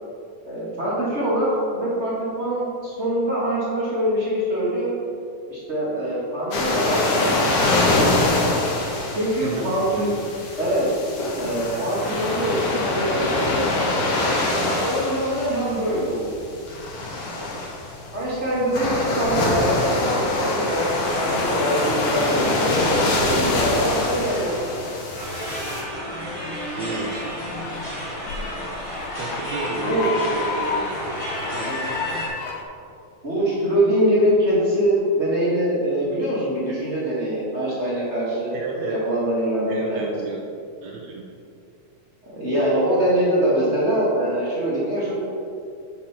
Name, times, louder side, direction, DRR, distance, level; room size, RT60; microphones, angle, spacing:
voice 1, 0.4-1.5 1.7-4.9 5.5-7.4 9.1-10.2 10.6-10.9 11.3-13.7 14.6-16.4 18.1-24.5 29.7-30.1 31.6-31.9 33.2-40.1 42.2-45.2, right 1 dB, 35° right, -8 dB, 1.1 m, -23 dB
sound 1, 6.5-25.8, left 2 dB, 60° left, 1.9 m, -24 dB
voice 2, 9.4-10.1 26.7-27.2 29.2-31.0 31.5-31.9 38.5-39.0 39.7-40.5 40.8-41.3, right 3 dB, 75° right, -1 dB, 2.0 m, -32 dB
sound 2, 25.1-32.3, equal, 30° left, 0.6 m, -31 dB
sound 3, 26.0-32.6, left 5 dB, 80° left, 1.4 m, -32 dB
9.1 x 5.2 x 4.4 m, 2.5 s
omnidirectional pair, 3.4 m